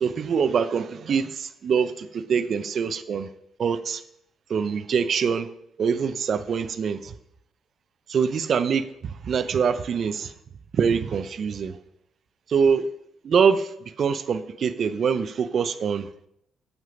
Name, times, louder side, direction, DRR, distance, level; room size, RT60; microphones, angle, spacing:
voice 1, 0.0-3.3 3.6-4.0 4.5-5.5 5.8-7.1 8.1-10.3 10.7-11.8 12.5-12.9 13.2-13.7 14.0-16.1, right 6 dB, 55° right, 0.6 m, -24 dB
7.4 x 6.4 x 5.1 m
cardioid pair, 90°, 0 cm